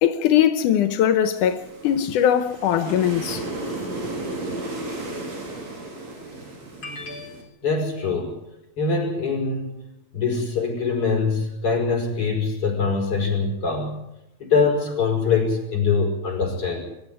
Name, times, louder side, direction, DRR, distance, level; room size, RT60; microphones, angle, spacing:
voice 1, 0.0-3.4, left 10 dB, 85° left, 2.5 m, -20 dB
sound 1, 1.4-7.4, right 2 dB, 60° right, 5.7 m, -34 dB
voice 2, 6.8-8.4 8.8-9.8 10.1-14.0 14.4-16.8, left 4 dB, 45° left, 6.3 m, -23 dB
24.5 x 13.0 x 9.7 m
omnidirectional pair, 3.6 m